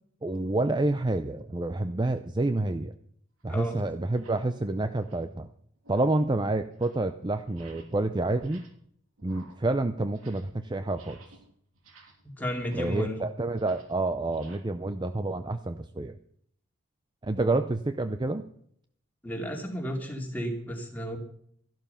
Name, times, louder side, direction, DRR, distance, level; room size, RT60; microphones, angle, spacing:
voice 1, 0.2-2.9 3.4-5.5 5.9-8.6 9.2-11.2 12.7-16.2 17.2-18.4, right 2 dB, 20° right, 10 dB, 0.5 m, -28 dB
sound 1, 2.5-2.7 3.4-3.5 4.0-4.5 4.9-5.4 5.8-6.3 6.6-7.1 7.5-8.0 8.3-8.9 9.2-10.6 10.9-14.6, right 3 dB, 80° right, 3.3 m, -56 dB
voice 2, 12.4-13.2 19.2-21.2, equal, 10° left, 1 dB, 2.8 m, -33 dB
13.5 x 12.0 x 5.7 m, 0.66 s
head